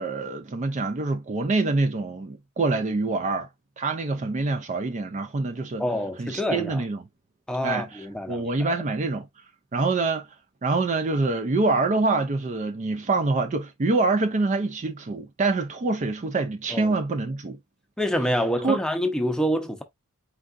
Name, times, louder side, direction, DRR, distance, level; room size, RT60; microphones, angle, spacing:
voice 1, 0.0-3.5 3.8-5.8 6.2-7.0 7.6-9.3 9.7-10.3 10.6-17.6 18.6-18.8, right 3 dB, 35° right, 0.5 m, -25 dB
voice 2, 5.8-6.8 7.5-8.8 16.7-16.9 18.0-19.8, equal, 5° left, 0.7 m, -27 dB
4.6 x 3.7 x 2.4 m
head